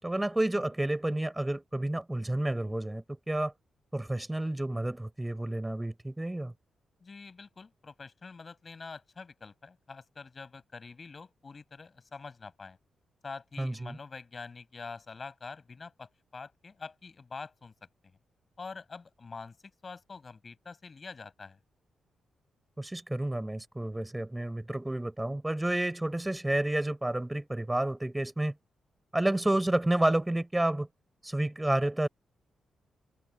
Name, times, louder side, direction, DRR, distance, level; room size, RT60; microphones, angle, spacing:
voice 1, 0.0-3.5 3.9-6.5 13.6-14.0 22.8-28.6 29.1-30.9 31.2-32.1, right 1 dB, 10° right, 6.0 m, -30 dB
voice 2, 7.0-12.8 13.2-17.7 18.6-19.6 19.8-21.6, left 4 dB, 40° left, 6.6 m, -45 dB
cardioid pair, 80°, 0 cm